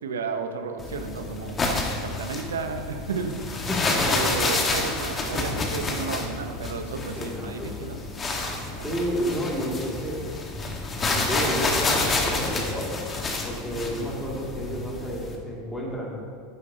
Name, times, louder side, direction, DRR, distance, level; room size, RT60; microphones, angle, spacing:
voice 1, 0.0-1.6 2.0-3.7 4.0-8.0 8.7-8.9, right 5 dB, 85° right, 6 dB, 0.9 m, -33 dB
sound 1, 0.8-15.4, left 3 dB, 25° left, 1.5 m, -29 dB
voice 2, 3.7-4.1 7.2-7.9 8.8-10.2 11.0-13.0 13.4-16.2, equal, ahead, -5 dB, 2.5 m, -31 dB
11.0 x 9.6 x 2.9 m, 2.2 s
hypercardioid pair, 90°, 0 cm